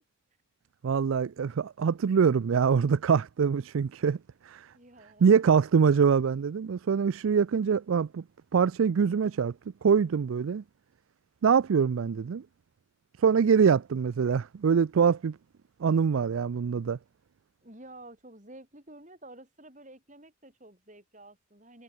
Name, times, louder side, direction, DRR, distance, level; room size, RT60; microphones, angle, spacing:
voice 1, 0.8-4.2 4.5-4.7 5.2-8.2 8.5-9.5 9.8-10.6 11.4-12.4 13.2-15.4 15.8-17.0, right 6 dB, 80° right, 0.4 m, -24 dB
voice 2, 4.7-5.5 17.6-21.8, right 1 dB, 35° right, 6.5 m, -50 dB
head